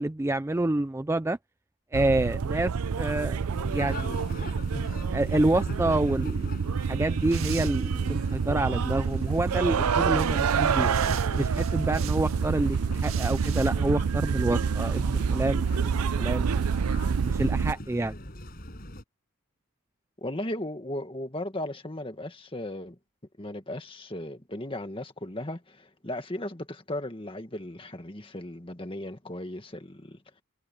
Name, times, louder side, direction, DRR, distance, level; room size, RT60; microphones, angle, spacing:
voice 1, 0.0-1.4 1.9-4.3 5.1-10.9 11.4-16.6 17.2-18.2, right 2 dB, 10° right, 0.3 m, -28 dB
sound 1, 1.9-17.7, right 6 dB, 90° right, 0.5 m, -27 dB
sound 2, 3.5-19.0, left 1 dB, 40° left, 7.9 m, -40 dB
sound 3, 7.3-8.3 9.0-9.6 10.1-12.4 12.9-13.7, right 11 dB, 70° right, 2.0 m, -43 dB
voice 2, 20.2-23.0 23.4-30.2, left 1 dB, 25° left, 1.8 m, -36 dB
head